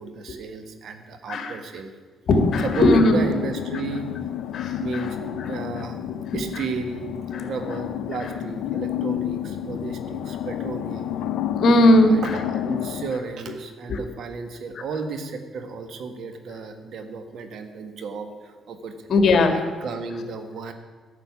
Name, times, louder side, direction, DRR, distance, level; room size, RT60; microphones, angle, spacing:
voice 1, 0.0-1.9 2.6-4.1 4.8-5.2 5.5-6.0 6.3-7.1 7.4-11.2 12.0-18.9 19.5-20.7, right 4 dB, 70° right, 7 dB, 1.5 m, -33 dB
voice 2, 1.3-1.6 2.3-3.2 4.5-5.1 6.3-6.6 7.3-7.5 11.6-12.4 13.9-14.0 19.1-19.6, left 1 dB, 60° left, 6 dB, 1.9 m, -18 dB
sound 1, 2.3-13.1, left 11 dB, 85° left, 0.6 m, -30 dB
12.0 x 6.9 x 9.6 m, 1.4 s
cardioid pair, 90°, 0 cm